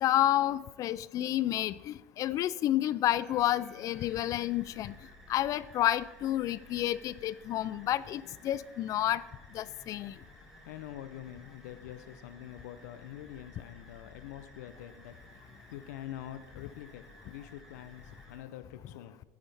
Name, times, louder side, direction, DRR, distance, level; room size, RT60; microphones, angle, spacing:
voice 1, 0.0-4.9 5.3-9.2 9.5-10.2, left 13 dB, 40° left, 18 dB, 0.4 m, -30 dB
sound 1, 3.1-18.4, equal, 5° right, 2.0 m, -55 dB
voice 2, 10.7-15.1 15.7-19.2, left 12 dB, 85° left, 11 dB, 0.6 m, -45 dB
10.0 x 9.7 x 3.4 m, 1.1 s
supercardioid pair, 125°, 9 cm